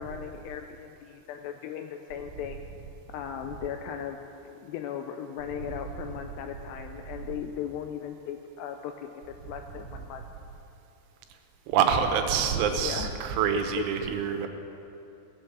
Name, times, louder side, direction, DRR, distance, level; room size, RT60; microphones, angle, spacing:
voice 1, 0.0-2.7 3.1-9.2 9.5-10.2 12.8-13.1 13.5-14.1, left 9 dB, 85° left, 5 dB, 2.4 m, -37 dB
voice 2, 11.7-14.5, right 7 dB, 90° right, 6 dB, 3.3 m, -26 dB
17.0 x 6.6 x 7.3 m, 2.9 s
omnidirectional pair, 5.3 m